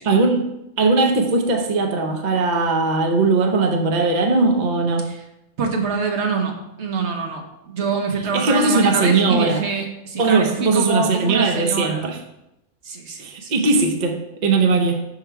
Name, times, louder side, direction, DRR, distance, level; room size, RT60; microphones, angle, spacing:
voice 1, 0.0-5.1 8.3-9.6 10.2-12.2 13.2-15.1, right 3 dB, 45° right, 2 dB, 0.6 m, -19 dB
voice 2, 5.6-12.0 12.8-13.5, right 4 dB, 65° right, 3 dB, 1.1 m, -25 dB
5.7 x 3.7 x 4.5 m, 0.87 s
omnidirectional pair, 1.3 m